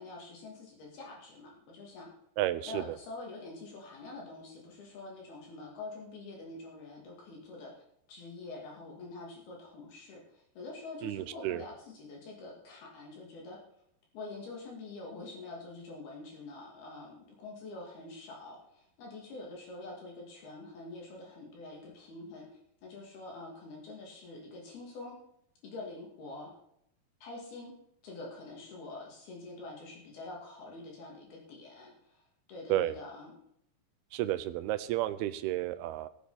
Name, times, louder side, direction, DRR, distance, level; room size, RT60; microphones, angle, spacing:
voice 1, 0.0-2.1 2.6-7.7 8.1-13.6 14.1-22.5 22.8-25.2 25.6-26.5 27.2-27.7 28.0-33.3, left 2 dB, 65° left, -2 dB, 4.3 m, -46 dB
voice 2, 2.4-2.8 11.0-11.6 32.7-33.0 34.1-36.1, right 14 dB, 80° right, 13 dB, 2.5 m, -32 dB
20.5 x 7.9 x 4.1 m, 0.74 s
omnidirectional pair, 4.8 m